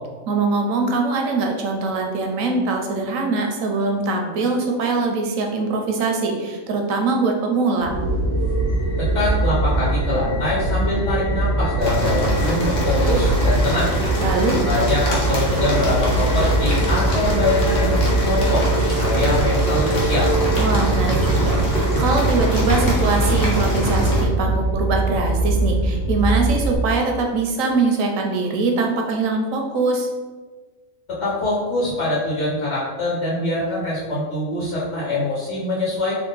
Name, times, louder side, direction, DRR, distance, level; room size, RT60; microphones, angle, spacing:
voice 1, 0.3-7.9 14.2-14.6 20.6-30.1, right 3 dB, 90° right, 2 dB, 1.1 m, -22 dB
sound 1, 7.8-26.8, right 2 dB, 85° left, 1.4 m, -22 dB
voice 2, 9.0-13.9 14.6-20.3 31.1-36.2, left 2 dB, 65° left, -7 dB, 1.4 m, -23 dB
sound 2, 11.8-24.2, equal, 50° left, 1.1 m, -24 dB
3.5 x 2.4 x 3.9 m, 1.4 s
omnidirectional pair, 1.3 m